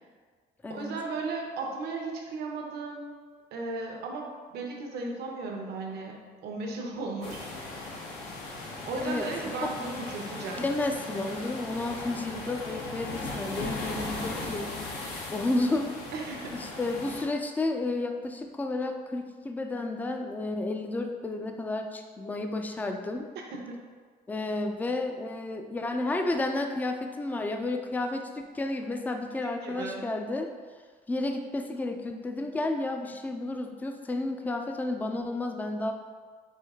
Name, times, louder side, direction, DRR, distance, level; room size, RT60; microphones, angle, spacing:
voice 1, 0.7-3.1 3.5-7.8 8.9-10.6 16.1-16.5 29.6-30.0, right 3 dB, 75° right, 0 dB, 0.7 m, -35 dB
sound 1, 7.2-17.2, left 2 dB, 75° left, 0.9 m, -38 dB
voice 2, 10.6-14.7 15.3-15.9 16.5-23.3 24.3-30.5 31.1-35.9, left 2 dB, 10° left, 5 dB, 0.3 m, -31 dB
4.4 x 2.7 x 3.5 m, 1.5 s
cardioid pair, 110°, 17 cm